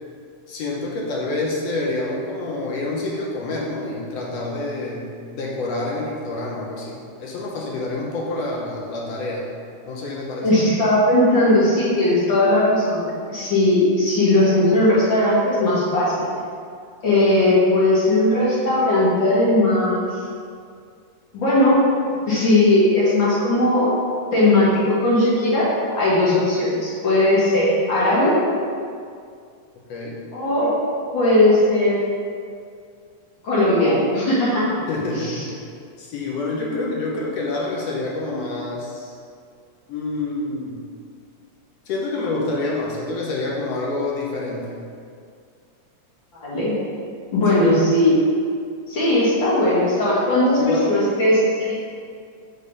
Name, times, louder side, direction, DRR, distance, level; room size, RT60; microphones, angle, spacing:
voice 1, 0.5-9.5 9.9-10.5 29.9-30.2 34.9-35.5 36.0-39.1 39.9-40.8 41.9-44.8 47.5-47.6 50.6-50.8, left 2 dB, 70° left, -3 dB, 1.5 m, -27 dB
voice 2, 10.4-13.0 13.3-16.2 17.0-20.1 21.3-23.9 24.3-28.3 30.3-30.7 31.1-32.0 33.4-34.7 35.2-35.3 46.3-46.7 47.3-48.2 48.9-51.7, left 1 dB, 45° left, -8 dB, 1.8 m, -18 dB
7.4 x 3.8 x 5.3 m, 2.3 s
omnidirectional pair, 3.9 m